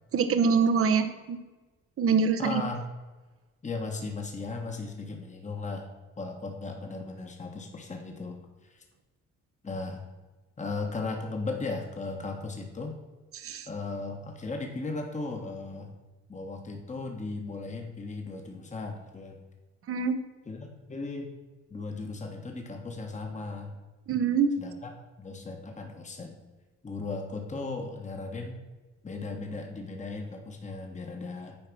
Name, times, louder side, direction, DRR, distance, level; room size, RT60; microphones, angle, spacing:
voice 1, 0.1-1.4 2.0-2.6 13.3-13.7 19.9-20.2 24.1-24.5, right 5 dB, 50° right, 9 dB, 0.8 m, -25 dB
voice 2, 2.4-2.8 3.6-5.9 6.2-8.8 9.6-10.0 10.6-12.9 13.7-16.0 16.3-19.4 20.5-21.3 21.7-23.8 24.6-24.9 25.2-26.3 26.8-28.6 29.0-31.6, left 3 dB, 25° left, 3 dB, 1.3 m, -36 dB
8.9 x 4.7 x 6.1 m, 1.2 s
cardioid pair, 90°, 30 cm